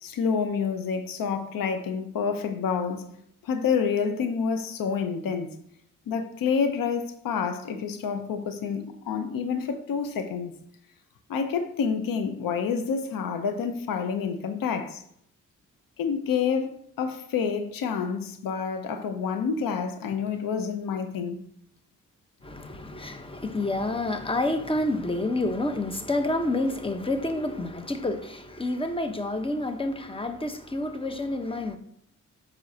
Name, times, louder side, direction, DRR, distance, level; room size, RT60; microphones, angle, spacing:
voice 1, 0.0-3.1 3.4-5.5 6.1-10.5 11.3-15.0 16.0-21.4, left 6 dB, 90° left, 0.7 m, -28 dB
voice 2, 22.4-31.8, left 2 dB, 15° left, 0.9 m, -29 dB
7.7 x 6.3 x 2.8 m
cardioid pair, 55°, 33 cm